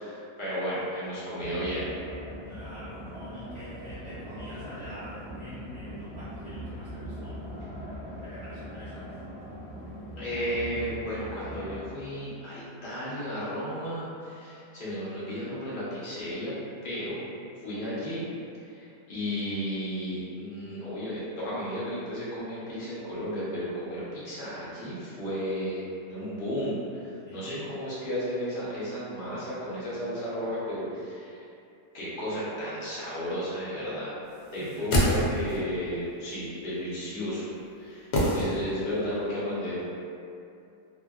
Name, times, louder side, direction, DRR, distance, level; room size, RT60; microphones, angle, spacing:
voice 1, 0.0-1.9 10.2-16.5 16.8-17.2 17.6-18.2 18.6-25.8 26.1-31.4 31.9-34.1 34.5-37.4 37.8-39.8, equal, 45° left, -10 dB, 0.7 m, -33 dB
sound 1, 1.4-11.9, equal, 5° right, 0.5 m, -41 dB
voice 2, 2.5-7.7 8.2-9.0 27.3-27.6 34.7-34.8, equal, 65° right, -12 dB, 0.9 m, -45 dB
sound 2, 34.5-35.7 38.1-39.0 39.3-39.4, equal, 70° left, 0.9 m, -26 dB
2.8 x 2.5 x 2.3 m, 2.6 s
omnidirectional pair, 1.7 m